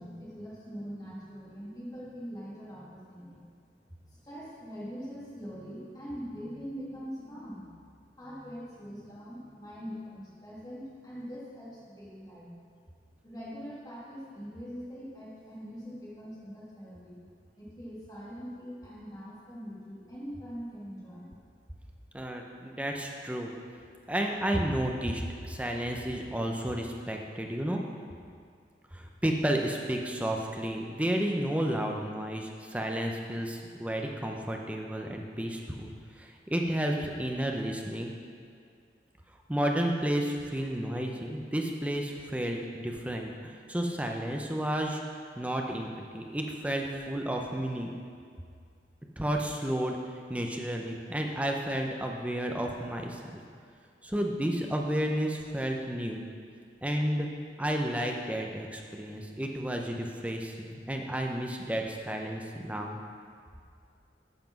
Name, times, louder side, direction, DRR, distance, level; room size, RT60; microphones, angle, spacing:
voice 1, 0.0-3.4 4.0-12.5 13.2-17.2 17.6-21.4, equal, 20° left, -8 dB, 2.5 m, -43 dB
voice 2, 22.1-23.5 24.1-27.8 28.9-38.1 39.5-45.0 45.4-45.9 46.1-47.9 49.2-53.4 54.0-56.3 56.8-57.3 57.6-63.0, right 1 dB, 10° right, 1 dB, 0.6 m, -32 dB
9.0 x 5.9 x 5.9 m, 2.3 s
head